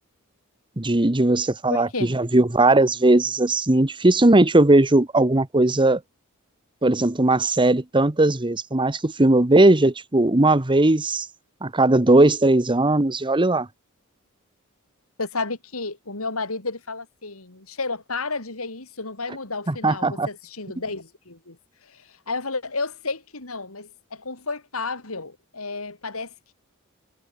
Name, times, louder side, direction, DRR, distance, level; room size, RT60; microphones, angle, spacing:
voice 1, 0.8-6.0 6.8-11.3 11.6-13.7 19.7-20.3, right 2 dB, 25° right, 1.2 m, -18 dB
voice 2, 1.7-2.2 15.2-21.6 21.9-26.5, left 3 dB, 85° left, 4.0 m, -32 dB
head